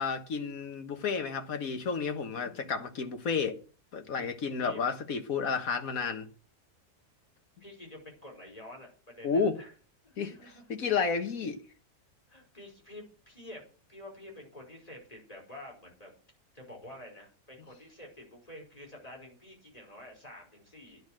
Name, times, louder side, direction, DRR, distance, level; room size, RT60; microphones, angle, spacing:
voice 1, 0.0-3.6 3.9-6.3 9.2-9.6 10.2-11.6, left 5 dB, 60° left, 1.8 m, -31 dB
voice 2, 7.6-9.7 10.0-10.6 12.3-13.6 13.9-16.1 16.5-21.0, left 1 dB, 20° left, 5.5 m, -49 dB
10.5 x 10.5 x 6.4 m
omnidirectional pair, 1.7 m